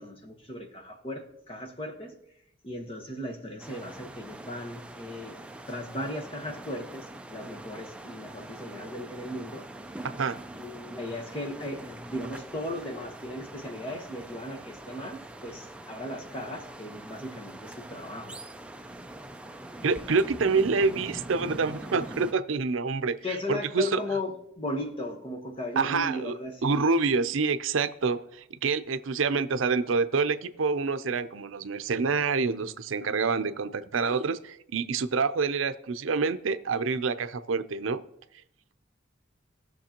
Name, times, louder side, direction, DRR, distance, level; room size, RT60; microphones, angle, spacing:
voice 1, 0.0-2.1 2.6-5.4 5.7-9.7 10.6-18.4 23.2-26.8, left 1 dB, 30° left, 1.2 m, -37 dB
sound 1, 3.6-22.3, right 1 dB, 5° right, 0.4 m, -43 dB
voice 2, 19.8-23.2 23.5-24.0 25.8-26.3 26.6-38.0, right 4 dB, 85° right, 0.5 m, -27 dB
19.0 x 6.5 x 2.9 m
head